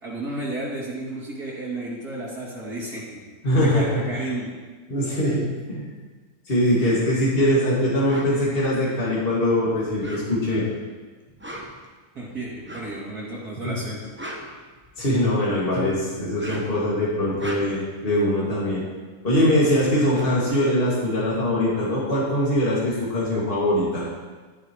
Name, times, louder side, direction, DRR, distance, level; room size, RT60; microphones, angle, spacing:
voice 1, 0.0-3.0 3.6-4.5 12.1-14.0, right 2 dB, 80° right, -6 dB, 3.3 m, -32 dB
voice 2, 3.4-4.2 4.9-5.9 6.5-10.6 13.6-13.7 15.0-18.8 19.2-24.0, left 1 dB, 40° left, -8 dB, 2.4 m, -22 dB
sound 1, 8.1-8.3 9.9-10.6 11.3-11.9 12.6-13.0 13.9-15.2 16.2-16.8 17.2-17.9 19.5-19.6 19.8-21.5, right 1 dB, 10° right, 0.9 m, -38 dB
11.5 x 11.0 x 3.1 m, 1.4 s
omnidirectional pair, 1.6 m